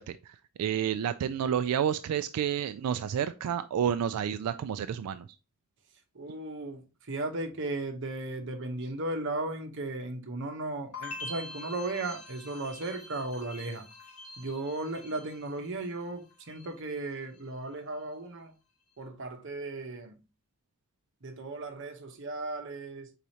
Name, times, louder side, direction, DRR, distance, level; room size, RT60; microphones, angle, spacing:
voice 1, 0.0-5.3, right 9 dB, 85° right, 0.3 m, -30 dB
voice 2, 6.1-13.8 14.4-18.5 19.0-20.2 21.2-23.1, right 2 dB, 55° right, 0.9 m, -36 dB
sound 1, 10.9-16.0 16.3-16.9, left 2 dB, 75° left, 1.2 m, -45 dB
4.8 x 4.0 x 2.8 m
head